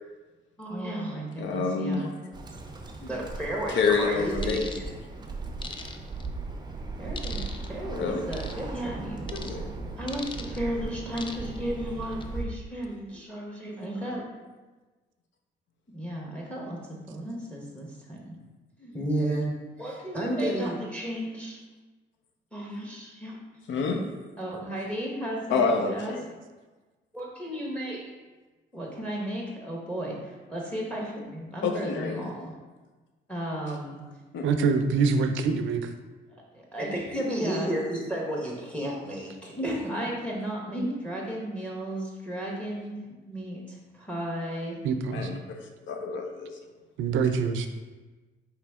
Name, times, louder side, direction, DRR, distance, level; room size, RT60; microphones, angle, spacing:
voice 1, 0.6-2.1 3.0-4.8 7.0-7.4 7.7-9.2 10.0-14.2 15.9-18.4 18.8-19.5 19.8-21.6 22.5-23.4 24.4-26.1 27.1-28.0 28.7-32.5 33.3-34.0 36.5-43.0 43.3-44.8, right 1 dB, 5° left, -2 dB, 1.0 m, -33 dB
voice 2, 1.4-2.2 3.7-4.6 7.9-8.2 9.4-9.6 23.7-24.0 25.5-26.2 31.6-32.3 34.3-34.4 45.1-45.6 45.9-46.5, left 4 dB, 70° left, 3 dB, 0.6 m, -27 dB
Bird, 2.3-12.5, right 3 dB, 20° right, 0.5 m, -37 dB
sound 1, 4.4-4.8 5.6-6.3 7.2-7.7 8.3-8.6 9.3-9.5 10.1-10.6 11.2-11.6 12.0-12.2, left 4 dB, 25° left, 0.4 m, -39 dB
voice 3, 34.4-35.9 44.8-45.3 47.0-47.7, right 5 dB, 80° right, 8 dB, 0.5 m, -25 dB
4.9 x 3.1 x 3.5 m, 1.3 s
cardioid pair, 90°, 20 cm